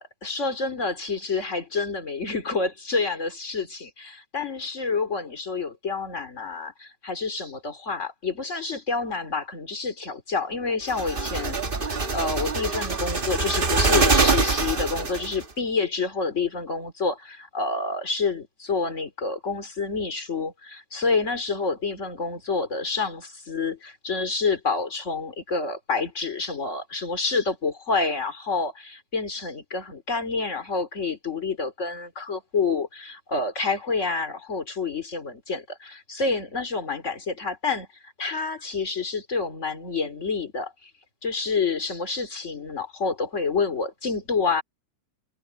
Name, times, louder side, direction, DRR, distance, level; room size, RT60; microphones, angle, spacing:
voice 1, 0.0-11.6 11.9-40.9 41.2-44.6, left 4 dB, 25° left, 2.8 m, -28 dB
sound 1, 10.9-15.4, right 3 dB, 40° right, 0.7 m, -24 dB
omnidirectional pair, 3.5 m